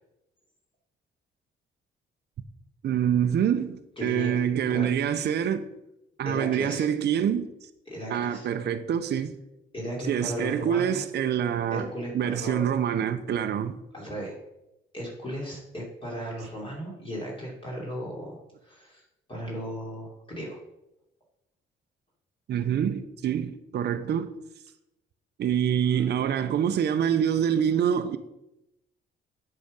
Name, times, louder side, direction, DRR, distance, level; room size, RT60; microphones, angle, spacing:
voice 1, 2.8-5.6 6.2-7.5 8.1-9.3 10.1-11.9 12.1-13.8 22.5-24.3 25.4-28.2, right 9 dB, 55° right, 0.6 m, -26 dB
voice 2, 4.0-4.3 4.6-4.9 6.2-6.9 7.9-8.5 9.7-11.1 11.7-12.7 13.9-14.4 14.9-20.6 25.9-26.0, equal, 25° left, 3.0 m, -36 dB
8.1 x 5.8 x 5.2 m
cardioid pair, 90°, 20 cm